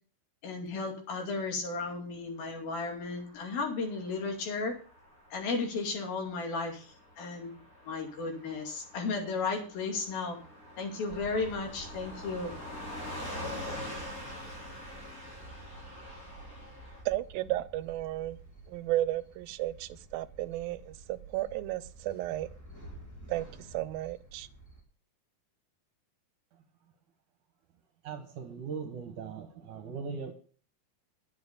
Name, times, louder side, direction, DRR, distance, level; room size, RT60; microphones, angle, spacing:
voice 1, 0.4-4.8 5.3-10.4 10.8-12.5, left 4 dB, 85° left, 4.3 m, -34 dB
Car passing by / Truck, 2.7-17.0, left 1 dB, 20° left, 6.3 m, -45 dB
sound 1, 11.1-24.8, right 2 dB, 5° left, 2.6 m, -51 dB
voice 2, 17.1-18.4 18.7-22.5 23.3-24.5, right 15 dB, 90° right, 2.5 m, -33 dB
voice 3, 28.0-30.3, right 5 dB, 65° right, 2.5 m, -39 dB
10.5 x 7.7 x 6.8 m
omnidirectional pair, 4.1 m